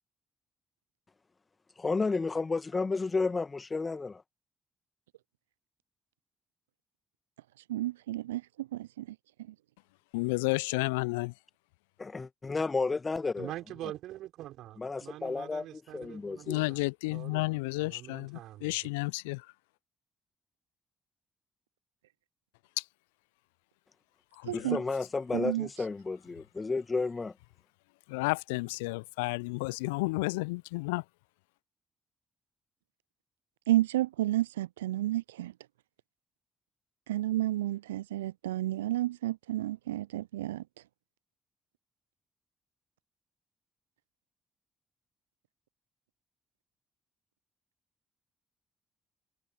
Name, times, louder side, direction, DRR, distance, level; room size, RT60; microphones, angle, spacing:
voice 1, 1.8-4.2 12.0-13.5 14.8-16.6 24.5-27.3, left 4 dB, 30° left, 1.9 m, -32 dB
voice 2, 7.7-9.0 24.5-24.8 25.3-25.7 33.7-35.5 37.1-40.6, right 15 dB, 80° right, 0.4 m, -31 dB
voice 3, 10.1-11.3 16.5-19.5 22.8-22.9 24.4-24.8 28.1-31.0, left 25 dB, 75° left, 0.7 m, -32 dB
voice 4, 13.4-18.9, right 14 dB, 65° right, 5.4 m, -45 dB
figure-of-eight pair, 40°, 0 cm